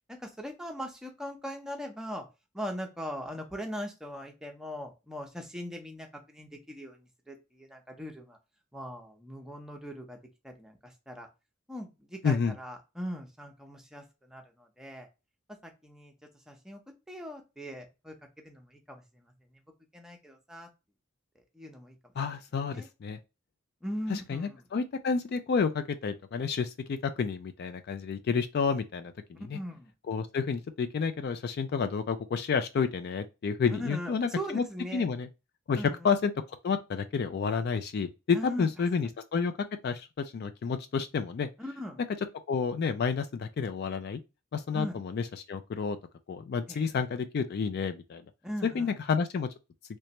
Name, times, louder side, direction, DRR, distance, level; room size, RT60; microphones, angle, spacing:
voice 1, 0.1-2.3 2.5-8.4 8.7-10.2 10.4-11.3 11.7-15.1 15.6-16.1 16.5-16.8 17.1-18.1 18.4-19.6 19.9-20.7 21.5-22.0 22.7-22.9 23.8-24.6 29.5-29.9 33.7-35.1 35.7-36.1 38.3-38.7 41.6-42.0 44.7-45.0 46.7-46.9 48.4-49.0, equal, 5° right, 0.7 m, -40 dB
voice 2, 12.2-12.5 22.2-23.2 24.1-29.6 30.1-34.6 34.9-35.3 35.7-36.3 36.6-39.5 39.8-41.5 42.5-44.2 44.5-46.0 46.3-48.2 48.6-49.5, left 5 dB, 50° left, 0.3 m, -30 dB
3.2 x 3.2 x 2.9 m
head